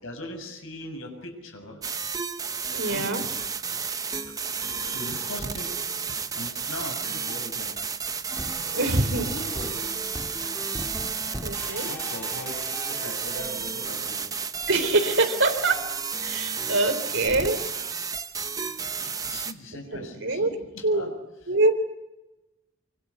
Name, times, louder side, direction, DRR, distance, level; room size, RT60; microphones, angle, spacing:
voice 1, 0.0-1.8 2.9-3.3 4.2-4.3 4.9-5.7 6.3-7.7 8.2-9.8 10.5-10.9 11.9-14.2 18.7-21.1, left 1 dB, 75° left, 5 dB, 6.7 m, -40 dB
sound 1, 1.8-19.5, right 5 dB, 15° right, 0.9 m, -32 dB
voice 2, 2.7-3.2 8.7-9.4 11.4-11.9 14.7-15.8 16.2-17.6 19.9-20.5 20.8-21.1 21.5-21.7, right 2 dB, 65° right, 7 dB, 3.7 m, -24 dB
sound 2, 8.3-13.6, equal, 10° left, 1.7 m, -39 dB
25.5 x 25.0 x 8.3 m, 1.0 s
head